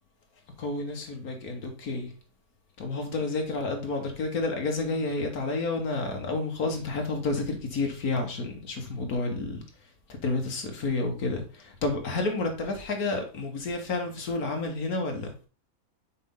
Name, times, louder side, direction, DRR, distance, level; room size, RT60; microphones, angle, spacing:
voice 1, 0.6-2.1 2.8-9.6 10.1-15.3, left 3 dB, 85° left, 1.9 m, -30 dB
6.6 x 4.8 x 3.8 m
omnidirectional pair, 1.5 m